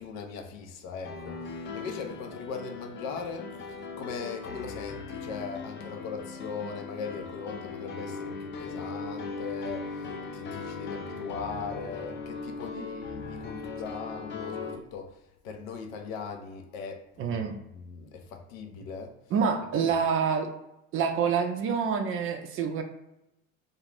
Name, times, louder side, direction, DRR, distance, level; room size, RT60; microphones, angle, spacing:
voice 1, 0.0-17.4 17.7-19.2 19.7-19.9, left 5 dB, 75° left, 0.7 m, -39 dB
Piano, 1.0-14.8, left 4 dB, 30° left, 0.5 m, -39 dB
voice 2, 17.2-17.5 19.3-20.5 20.9-22.8, right 6 dB, 35° right, 0.4 m, -27 dB
2.5 x 2.4 x 3.2 m
hypercardioid pair, 80°, 41 cm